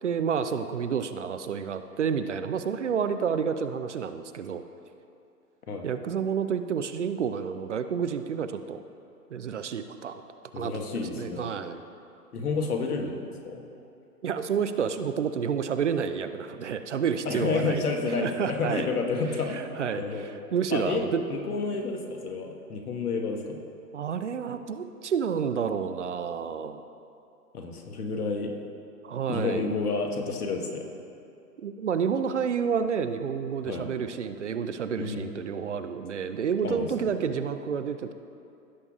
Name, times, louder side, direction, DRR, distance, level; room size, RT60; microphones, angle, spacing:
voice 1, 0.0-4.6 5.8-8.8 9.3-10.2 10.5-11.8 14.2-17.8 18.2-18.9 19.5-21.2 23.9-26.8 29.0-29.8 31.6-38.1, right 7 dB, 50° right, 10 dB, 0.5 m, -30 dB
voice 2, 10.5-11.5 12.3-13.6 17.2-19.6 20.0-20.3 20.7-21.0 21.3-23.6 27.5-28.5 29.3-30.9 33.6-33.9 35.0-35.3 36.6-37.1, left 4 dB, 65° left, 2 dB, 1.4 m, -30 dB
16.5 x 6.8 x 2.4 m, 2.7 s
figure-of-eight pair, 140°, 48 cm